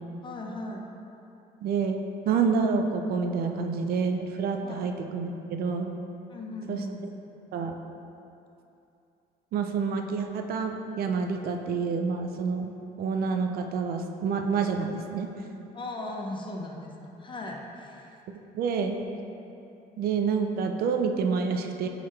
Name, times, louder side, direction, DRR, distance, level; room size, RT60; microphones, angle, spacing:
voice 1, 0.2-0.9 4.6-4.8 6.3-7.0 15.7-18.2 18.8-18.9, left 2 dB, 30° left, 0 dB, 0.8 m, -38 dB
voice 2, 1.6-5.9 6.7-6.8 7.5-7.8 9.5-15.3 18.5-19.0 20.0-21.9, right 5 dB, 65° right, 5 dB, 0.5 m, -28 dB
8.6 x 4.0 x 3.1 m, 2.7 s
cardioid pair, 110°, 17 cm